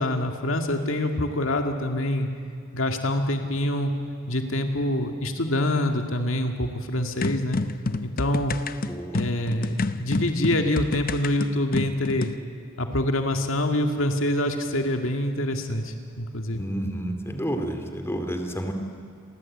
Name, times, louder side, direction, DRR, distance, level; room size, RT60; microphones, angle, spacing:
voice 1, 0.0-2.3 2.7-3.9 4.3-7.6 8.0-8.6 9.1-12.3 12.8-16.6, left 1 dB, 70° left, 4 dB, 2.2 m, -25 dB
sound 1, 7.2-12.4, left 3 dB, 45° left, 0.8 m, -29 dB
voice 2, 8.8-9.2 16.6-18.7, equal, 10° left, 5 dB, 2.6 m, -30 dB
29.0 x 23.0 x 8.7 m, 2.3 s
head